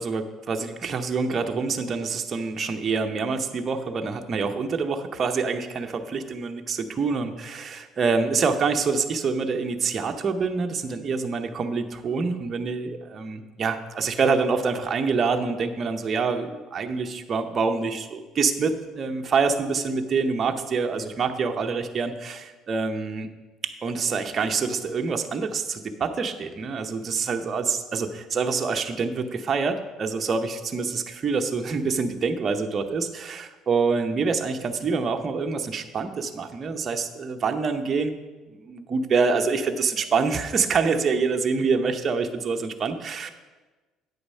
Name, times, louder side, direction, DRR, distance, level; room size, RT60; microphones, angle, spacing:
voice 1, 0.0-23.3 23.6-38.2 38.5-43.3, right 4 dB, 35° right, 5 dB, 0.8 m, -26 dB
9.0 x 6.7 x 5.5 m, 1.2 s
cardioid pair, 120°, 0 cm